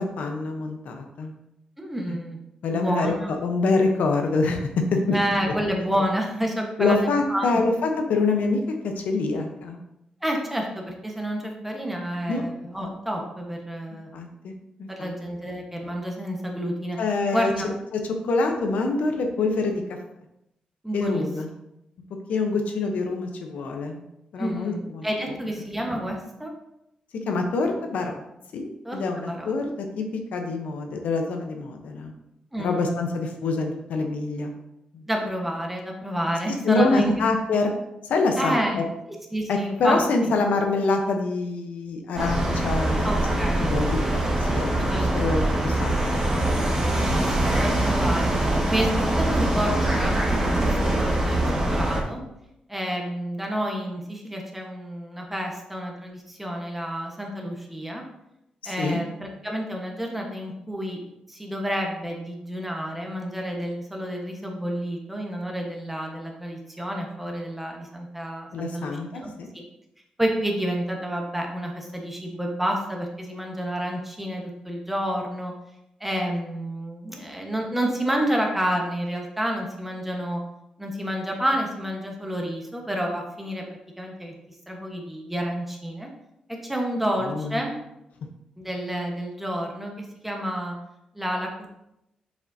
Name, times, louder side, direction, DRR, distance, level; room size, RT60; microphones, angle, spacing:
voice 1, 0.0-1.3 2.1-2.2 2.6-5.2 6.8-9.8 12.3-12.4 14.1-14.5 14.8-15.1 17.0-17.5 17.9-19.8 20.9-21.5 22.3-24.0 24.3-25.1 27.3-28.2 28.5-30.0 30.3-32.1 32.6-34.5 34.9-35.0 36.6-37.7 38.0-38.8 39.5-44.7 45.1-46.2 46.5-46.8 58.6-59.0 68.5-69.5 87.2-87.6, left 3 dB, 90° left, 4 dB, 0.8 m, -26 dB
voice 2, 1.8-2.4 2.7-3.3 5.1-7.7 10.2-14.1 14.9-17.0 17.3-17.7 20.8-21.2 24.4-26.5 28.8-29.5 32.5-32.9 35.1-37.2 38.4-38.8 39.3-40.0 43.0-43.7 44.8-45.4 46.8-51.4 51.7-52.2 52.7-58.0 58.6-61.0 61.3-69.6 70.2-75.5 76.0-80.4 80.8-83.6 84.0-84.3 84.7-86.1 86.6-87.8 88.6-90.8 91.1-91.5, equal, 5° right, 0 dB, 1.2 m, -29 dB
sound 1, 42.1-52.0, right 1 dB, 25° right, 1.4 m, -23 dB
6.8 x 5.1 x 2.7 m, 0.86 s
cardioid pair, 115°, 2 cm